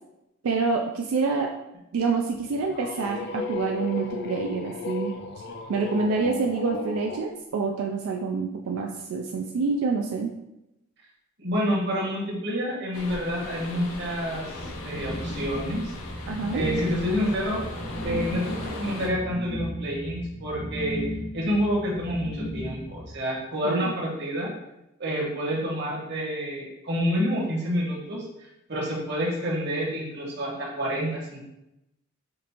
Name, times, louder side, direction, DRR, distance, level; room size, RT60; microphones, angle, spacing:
voice 1, 0.4-1.5 1.9-5.1 5.7-10.3 16.3-16.6 23.6-23.9, right 4 dB, 85° right, 2 dB, 0.3 m, -27 dB
sound 1, 2.3-7.2, left 4 dB, 50° left, 0.3 m, -35 dB
voice 2, 11.4-14.4 14.8-15.9 16.5-17.6 18.0-21.0 21.3-24.5 25.0-31.4, equal, 50° right, -3 dB, 1.1 m, -28 dB
sound 2, 12.9-19.1, left 2 dB, 85° left, 0.7 m, -38 dB
sound 3, 14.5-23.1, equal, 10° left, 0.7 m, -35 dB
5.2 x 2.5 x 2.9 m, 0.89 s
head